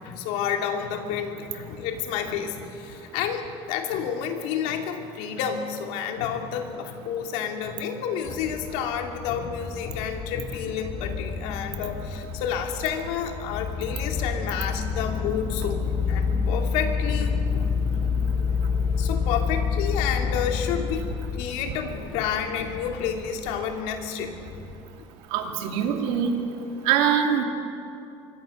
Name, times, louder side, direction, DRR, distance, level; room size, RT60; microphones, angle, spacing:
voice 1, 0.0-18.2 19.0-21.0 21.3-24.4, left 7 dB, 85° left, 4 dB, 2.8 m, -30 dB
sound 1, 8.2-24.8, left 5 dB, 45° left, 2.6 m, -29 dB
voice 2, 25.3-26.3 26.8-27.4, right 8 dB, 80° right, 4 dB, 2.6 m, -23 dB
25.5 x 23.0 x 6.6 m, 2.7 s
cardioid pair, 180°, 11 cm